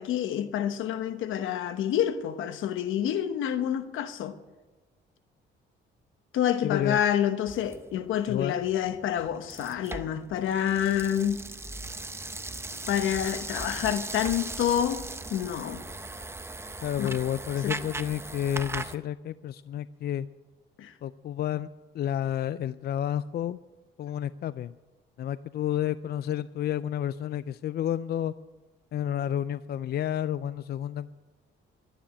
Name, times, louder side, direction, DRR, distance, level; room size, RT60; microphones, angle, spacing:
voice 1, 0.0-4.4 6.3-11.4 12.9-15.0 15.3-15.8 17.0-17.2 17.6-17.7 20.8-20.9, left 10 dB, 80° left, 1.1 m, -28 dB
voice 2, 6.6-7.0 8.3-8.5 16.8-20.3 21.0-21.7 21.9-23.6 24.0-24.7 25.2-28.3 28.9-31.1, left 10 dB, 55° left, 0.4 m, -30 dB
sound 1, 7.5-19.0, right 2 dB, 15° right, 0.7 m, -38 dB
11.5 x 10.0 x 8.7 m
cardioid pair, 90°, 20 cm